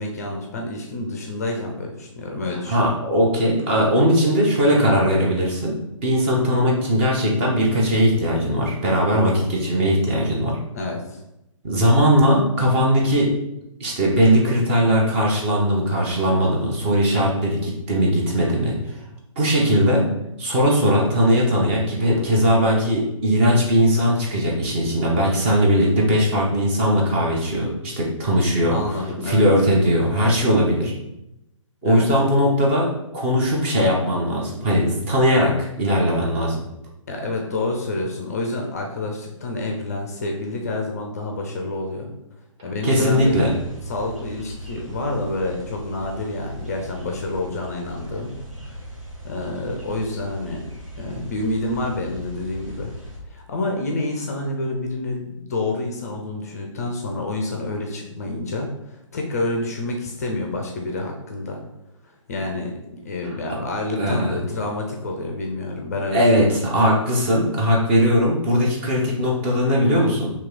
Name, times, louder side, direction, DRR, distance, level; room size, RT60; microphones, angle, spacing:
voice 1, 0.0-2.8 10.7-11.2 28.7-29.5 31.8-32.1 37.1-42.1 42.6-43.4 43.9-48.3 48.6-48.8 49.2-50.7 51.0-52.9 53.3-61.6 62.3-66.3, left 2 dB, 30° left, 1 dB, 0.4 m, -28 dB
voice 2, 2.7-5.8 6.0-10.6 11.6-13.3 13.8-18.8 19.4-20.1 20.4-28.8 29.3-30.9 31.8-36.6 42.8-43.5 64.0-64.4 66.1-70.3, equal, 20° right, -2 dB, 0.6 m, -19 dB
sound 1, 43.1-53.2, equal, 75° right, 1.2 m, -38 dB
2.9 x 2.8 x 3.6 m, 0.86 s
figure-of-eight pair, 135°, 17 cm